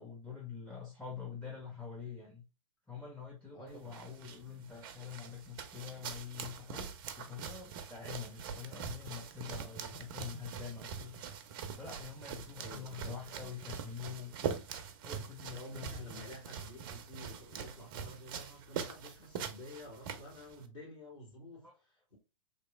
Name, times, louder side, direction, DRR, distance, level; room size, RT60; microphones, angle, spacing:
voice 1, 0.0-2.4 2.9-11.2 11.8-14.6 15.0-16.2 21.6-21.7, left 7 dB, 5° left, 0.7 m, -46 dB
voice 2, 3.5-3.9 12.5-13.5 15.5-22.2, equal, 55° left, 1.8 m, -50 dB
sound 1, 3.7-20.7, right 7 dB, 40° right, 0.5 m, -44 dB
3.0 x 3.0 x 2.2 m
figure-of-eight pair, 110°, 17 cm